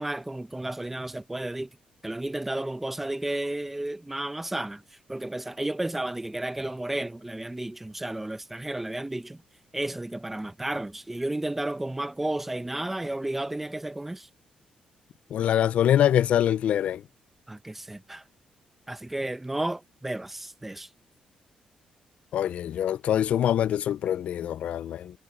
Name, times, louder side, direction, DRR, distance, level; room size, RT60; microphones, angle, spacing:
voice 1, 0.0-1.7 2.0-4.8 5.1-9.4 9.7-14.3 17.5-18.2 18.9-20.9, right 1 dB, 10° right, 0.9 m, -32 dB
voice 2, 15.3-17.0 22.3-25.1, left 10 dB, 60° left, 0.4 m, -24 dB
cardioid pair, 170°, 3 cm